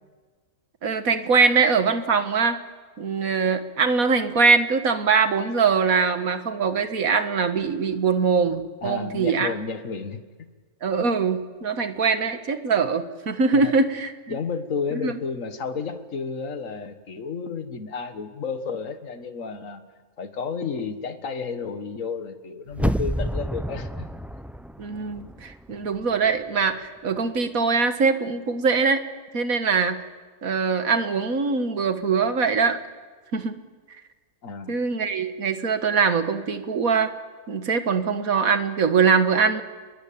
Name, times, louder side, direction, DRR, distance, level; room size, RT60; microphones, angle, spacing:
voice 1, 0.8-2.6 3.0-9.5 10.8-14.4 15.0-15.2 24.8-29.0 29.3-30.0 30.4-32.8 33.3-33.6 34.7-37.1 37.5-39.6, right 5 dB, 80° right, 9 dB, 2.0 m, -22 dB
voice 2, 8.8-10.5 13.5-13.7 14.3-19.8 20.2-24.1 34.4-34.8, left 5 dB, 65° left, 9 dB, 1.9 m, -32 dB
Magic Explosion Spell Sorcery Enchant Invocation, 22.7-25.7 26.0-26.1, equal, ahead, 0.5 m, -29 dB
28.5 x 22.0 x 8.7 m, 1.5 s
omnidirectional pair, 1.5 m